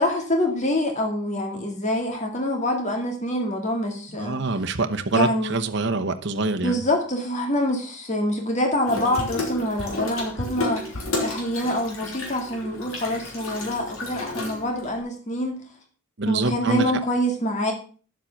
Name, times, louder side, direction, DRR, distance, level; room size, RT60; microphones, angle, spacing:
voice 1, 0.0-4.4 5.1-5.6 6.6-15.6 16.2-17.7, left 1 dB, 30° left, 3 dB, 2.2 m, -26 dB
voice 2, 4.2-6.8 16.2-16.9, right 3 dB, 50° right, 6 dB, 1.0 m, -25 dB
Water tap faucet / Sink (filling or washing), 8.9-15.0, left 2 dB, 70° left, 3.2 m, -32 dB
10.0 x 7.5 x 5.9 m, 0.40 s
head